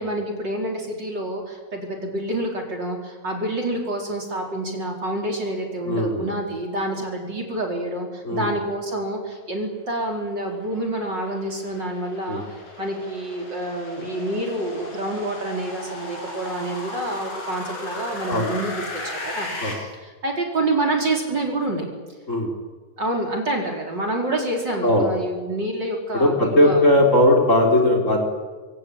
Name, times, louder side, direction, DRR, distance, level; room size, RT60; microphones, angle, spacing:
voice 1, 0.0-21.9 23.0-26.9, right 1 dB, 35° right, 1 dB, 4.8 m, -27 dB
voice 2, 5.8-6.3 8.2-8.5 12.3-12.4 18.3-18.5 19.6-19.7 22.3-22.5 24.8-25.1 26.1-28.2, left 1 dB, 25° left, 3 dB, 4.6 m, -18 dB
sound 1, 10.2-19.7, left 1 dB, 75° left, 8.4 m, -36 dB
26.5 x 24.5 x 8.8 m, 1.4 s
omnidirectional pair, 3.4 m